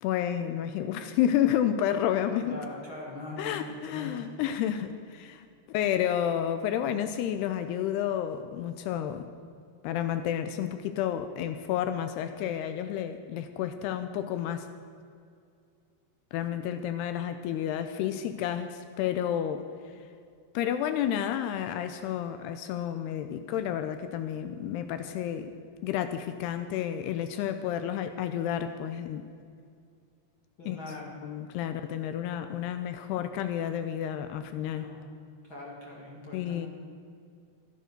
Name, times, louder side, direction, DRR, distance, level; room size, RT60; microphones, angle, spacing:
voice 1, 0.0-2.6 3.4-9.3 9.8-14.7 16.3-20.0 20.5-25.5 25.8-29.2 30.7-30.8 31.2-34.8 36.3-36.7, left 10 dB, 80° left, 9 dB, 2.5 m, -30 dB
voice 2, 2.4-4.3 30.6-31.2 34.7-35.0 35.4-36.6, left 2 dB, 45° left, -3 dB, 1.8 m, -41 dB
14.5 x 11.0 x 6.7 m, 2.3 s
omnidirectional pair, 5.0 m